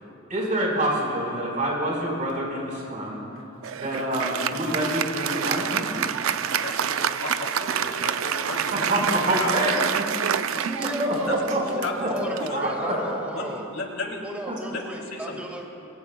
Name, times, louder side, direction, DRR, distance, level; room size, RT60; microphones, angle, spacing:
voice 1, 0.3-3.2 3.7-6.1 8.7-10.0 11.0-12.9 14.5-14.6, right 1 dB, 40° right, -3 dB, 4.6 m, -26 dB
Applause, 3.6-13.4, right 8 dB, 85° right, 0.5 m, -28 dB
voice 2, 6.6-8.9 9.2-9.9 10.1-10.3 11.3-12.6 13.3-14.2 14.7-15.4, left 2 dB, 80° left, 0 dB, 2.8 m, -34 dB
voice 3, 10.6-11.4 12.1-13.6 14.2-15.7, right 1 dB, 5° right, 0 dB, 2.0 m, -34 dB
27.0 x 23.0 x 2.3 m, 2.6 s
head